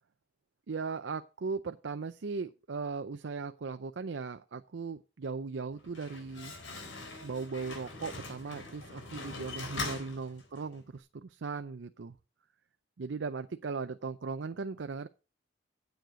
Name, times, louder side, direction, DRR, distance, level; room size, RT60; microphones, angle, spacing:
voice 1, 0.7-12.2 13.0-15.1, right 4 dB, 70° right, 10 dB, 0.5 m, -38 dB
Slam, 5.7-10.8, left 3 dB, 85° left, 4.2 m, -42 dB
9.3 x 7.9 x 4.9 m, 0.33 s
head